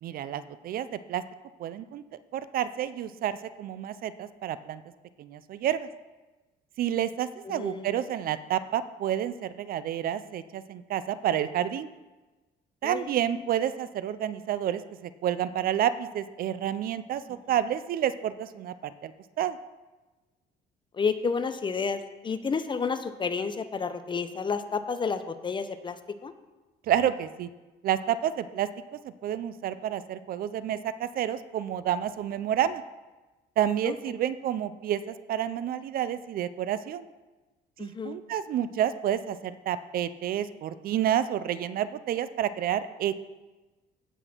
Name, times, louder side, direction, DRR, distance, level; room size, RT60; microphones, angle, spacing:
voice 1, 0.0-1.2 1.6-2.0 2.3-4.8 5.2-5.9 6.8-11.9 12.8-19.1 19.4-19.6 26.9-27.5 27.8-32.8 33.6-37.0 37.8-43.2, right 10 dB, 60° right, 14 dB, 0.6 m, -29 dB
voice 2, 7.5-7.9 12.8-13.0 20.9-26.0 26.2-26.3 33.8-33.9 37.8-38.2, left 5 dB, 30° left, 10 dB, 0.8 m, -30 dB
16.0 x 6.1 x 4.5 m, 1.2 s
cardioid pair, 110°, 17 cm